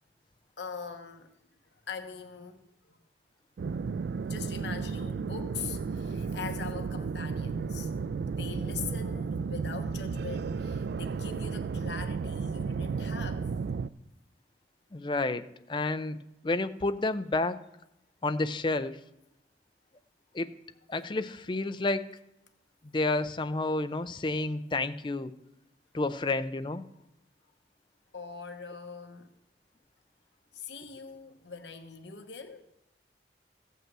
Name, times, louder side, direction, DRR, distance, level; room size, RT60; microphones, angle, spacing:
voice 1, 0.6-1.3 1.9-3.0 4.2-7.9 8.3-13.4 28.1-29.3 30.5-32.6, left 6 dB, 70° left, 1.0 m, -42 dB
sound 1, 3.6-13.9, right 5 dB, 60° right, 0.3 m, -33 dB
voice 2, 14.9-17.6 18.2-19.0 20.3-20.5 20.9-22.1 22.8-25.3 25.9-26.8, left 2 dB, 25° left, 0.4 m, -30 dB
15.0 x 5.5 x 7.5 m
head